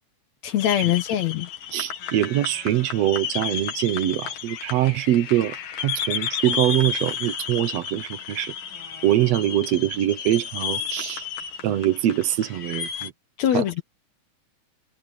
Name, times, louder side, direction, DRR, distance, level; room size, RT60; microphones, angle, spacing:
voice 1, 0.4-1.5 13.4-13.8, left 11 dB, 65° left, 2.2 m, -23 dB
sound 1, 0.6-13.1, left 7 dB, 80° left, 3.8 m, -32 dB
voice 2, 1.7-8.5 9.0-11.2 11.6-13.1 13.5-13.6, right 13 dB, 65° right, 1.9 m, -23 dB
omnidirectional pair, 3.8 m